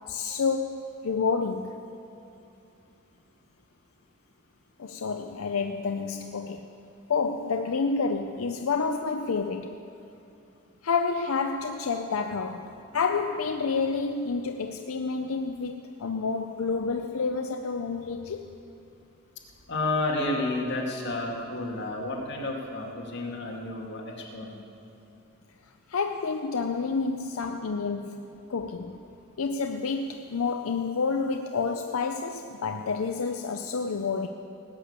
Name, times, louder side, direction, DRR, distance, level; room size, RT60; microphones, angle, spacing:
voice 1, 0.0-1.8 4.8-6.7 7.1-9.8 10.8-18.5 25.9-28.2 28.5-29.0 29.4-34.3, left 4 dB, 85° left, 0.6 m, -29 dB
voice 2, 19.7-24.6, left 2 dB, 55° left, 2.3 m, -31 dB
18.5 x 6.8 x 8.8 m
head